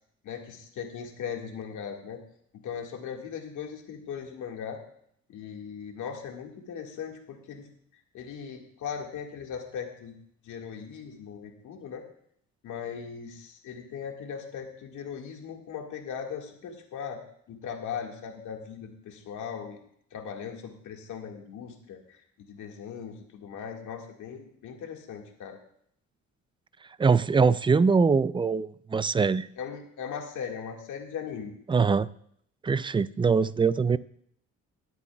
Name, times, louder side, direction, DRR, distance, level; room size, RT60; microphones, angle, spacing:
voice 1, 0.2-2.2 2.6-4.8 5.3-7.7 8.1-10.2 10.4-12.0 12.6-17.2 17.5-19.8 20.1-22.0 22.4-25.6 29.6-31.5, left 7 dB, 80° left, 2 dB, 1.9 m, -38 dB
voice 2, 27.0-29.5 31.7-32.1 32.6-34.0, right 5 dB, 15° right, 17 dB, 0.3 m, -23 dB
20.5 x 8.3 x 2.3 m, 0.68 s
cardioid pair, 90°, 30 cm